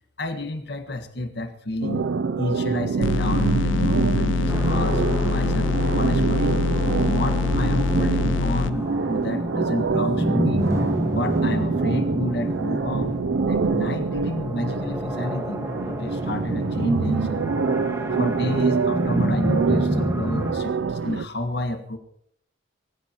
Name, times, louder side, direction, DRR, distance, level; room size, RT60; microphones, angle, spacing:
voice 1, 0.2-2.1 2.4-6.6 7.1-10.6 11.1-13.1 13.5-17.5 18.1-22.0, left 1 dB, 60° left, 7 dB, 1.6 m, -30 dB
sound 1, 1.8-21.3, right 4 dB, 80° right, 0.5 m, -25 dB
sound 2, 3.0-8.7, left 4 dB, 85° left, 0.5 m, -24 dB
sound 3, 4.5-20.5, equal, 15° right, 1.6 m, -29 dB
24.0 x 15.0 x 3.0 m, 0.69 s
head